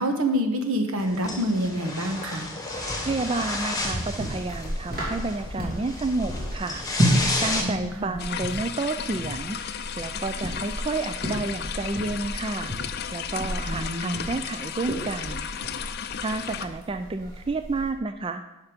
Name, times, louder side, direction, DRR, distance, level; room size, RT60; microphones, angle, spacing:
voice 1, 0.0-2.5 7.6-8.2 13.7-14.3, equal, 85° right, 5 dB, 1.2 m, -27 dB
sound 1, 1.0-7.6, left 2 dB, 15° left, 1.2 m, -32 dB
voice 2, 2.7-6.8 7.4-12.7 13.1-15.5 16.2-18.4, right 3 dB, 25° right, 8 dB, 0.3 m, -30 dB
sound 2, 3.6-17.9, equal, 45° right, 2.8 m, -32 dB
sound 3, 8.2-16.7, left 8 dB, 50° left, 0.4 m, -34 dB
10.5 x 5.8 x 5.1 m, 0.96 s
head